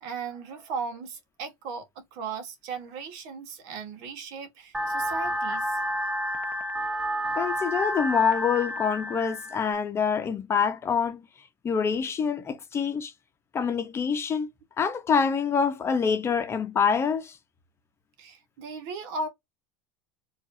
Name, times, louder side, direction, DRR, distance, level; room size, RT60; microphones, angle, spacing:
voice 1, 0.0-5.8 6.8-6.9 18.2-19.3, right 4 dB, 65° right, 1.4 m, -37 dB
sound 1, 4.7-9.7, equal, 10° right, 0.7 m, -30 dB
voice 2, 7.3-11.2 11.6-13.1 13.5-14.5 14.8-17.3, left 6 dB, 25° left, 0.8 m, -26 dB
4.6 x 2.6 x 2.6 m
supercardioid pair, 130°, 10 cm